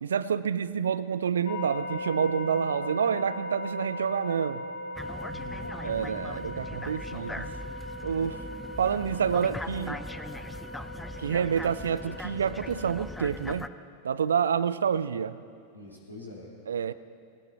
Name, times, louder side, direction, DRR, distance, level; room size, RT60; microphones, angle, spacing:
voice 1, 0.0-4.6 5.8-7.4 8.0-8.4 8.8-10.0 11.2-13.7 14.0-15.4 16.7-16.9, right 7 dB, 65° right, 16 dB, 0.5 m, -28 dB
sound 1, 1.4-12.9, left 1 dB, 55° left, 2.0 m, -39 dB
sound 2, 4.9-13.7, left 1 dB, 5° left, 0.5 m, -40 dB
voice 2, 5.3-6.3 7.1-7.6 15.7-16.5, left 3 dB, 85° left, -5 dB, 3.8 m, -46 dB
20.5 x 18.5 x 3.0 m, 2.4 s
figure-of-eight pair, 90°, 0 cm